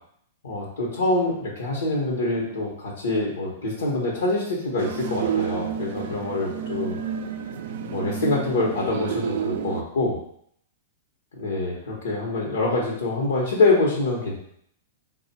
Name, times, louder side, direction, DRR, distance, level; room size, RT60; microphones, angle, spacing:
voice 1, 0.4-7.0 7.8-10.2 11.4-14.4, left 2 dB, 90° left, -5 dB, 0.9 m, -25 dB
sound 1, 4.8-9.8, right 8 dB, 65° right, 0.3 m, -30 dB
3.6 x 2.3 x 4.2 m, 0.67 s
hypercardioid pair, 130°, 0 cm